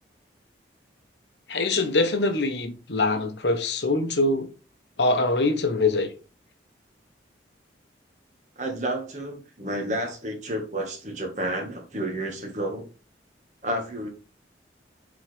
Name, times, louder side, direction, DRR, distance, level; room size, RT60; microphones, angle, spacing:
voice 1, 1.5-4.5 5.0-6.1, left 2 dB, 70° left, 1.0 m, -23 dB
voice 2, 8.6-12.9 13.6-14.1, right 1 dB, 40° right, 1.7 m, -30 dB
7.4 x 4.1 x 3.4 m
head